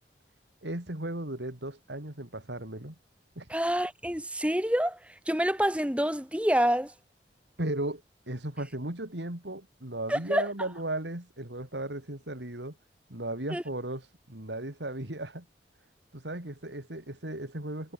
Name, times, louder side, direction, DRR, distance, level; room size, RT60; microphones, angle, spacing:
voice 1, 0.6-3.0 3.4-3.5 7.6-8.0 8.3-12.8 13.1-15.5 16.1-17.9, right 1 dB, 80° right, 3.8 m, -36 dB
voice 2, 3.5-5.0 5.3-6.9 10.1-10.4 13.5-13.6, equal, 5° right, 3.4 m, -27 dB
head